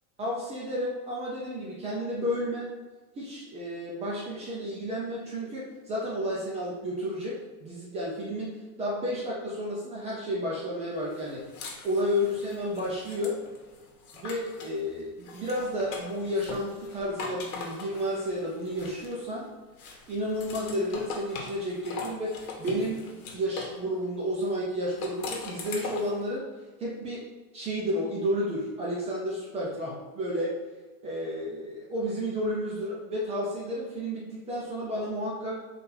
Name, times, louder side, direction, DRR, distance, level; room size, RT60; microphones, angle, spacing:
voice 1, 0.2-2.7 3.2-11.4 11.8-13.4 14.1-19.5 20.1-23.0 23.3-26.5 26.8-27.2 27.5-30.6 31.0-35.6, equal, 15° right, -5 dB, 0.5 m, -31 dB
sound 1, 11.1-14.8 15.2-19.4 19.8-23.8 24.8-26.2, left 4 dB, 70° left, 1.1 m, -41 dB
4.2 x 2.6 x 4.0 m, 1.3 s
supercardioid pair, 145°, 45 cm